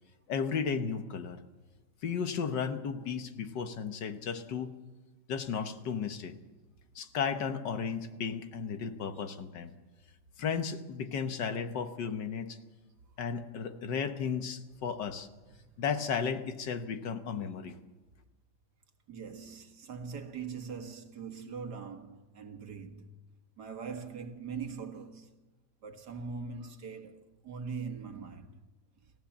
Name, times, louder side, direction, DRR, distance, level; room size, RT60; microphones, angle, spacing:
voice 1, 0.3-1.4 2.0-4.7 5.3-6.3 6.9-9.7 10.4-12.6 13.2-15.3 15.8-17.8, left 6 dB, 65° left, 1.7 m, -34 dB
voice 2, 19.1-23.1 23.6-25.3 25.8-28.6, right 5 dB, 55° right, 2.1 m, -42 dB
29.0 x 15.0 x 7.4 m
omnidirectional pair, 2.1 m